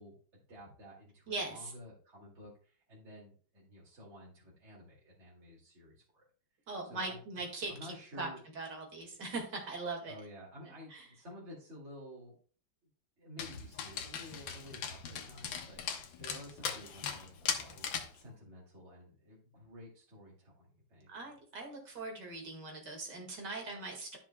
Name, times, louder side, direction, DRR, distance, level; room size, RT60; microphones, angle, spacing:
voice 1, 0.0-6.3 6.8-7.2 7.7-8.4 10.1-12.3 13.2-21.1, left 1 dB, 35° right, -6 dB, 2.6 m, -52 dB
voice 2, 1.3-1.7 6.7-8.3 8.6-10.1 10.9-11.1 21.1-24.2, right 3 dB, 55° right, 1 dB, 2.5 m, -40 dB
Dog, 13.4-18.2, left 7 dB, 70° left, 1.7 m, -39 dB
13.0 x 5.9 x 2.2 m, 0.41 s
omnidirectional pair, 2.3 m